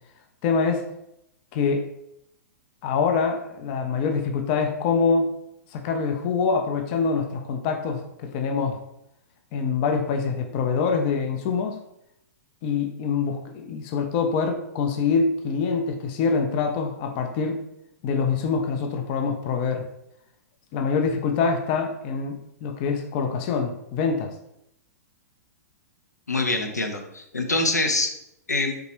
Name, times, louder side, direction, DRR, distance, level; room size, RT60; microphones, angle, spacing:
voice 1, 0.4-0.9 1.5-1.9 2.8-5.3 5.7-8.8 9.5-11.8 12.6-17.6 18.0-19.9 20.7-24.3, left 5 dB, 35° left, 4 dB, 0.4 m, -25 dB
voice 2, 26.3-28.1 28.5-28.8, left 2 dB, 85° left, 4 dB, 0.6 m, -24 dB
3.5 x 2.9 x 2.9 m, 0.80 s
figure-of-eight pair, 110°, 9 cm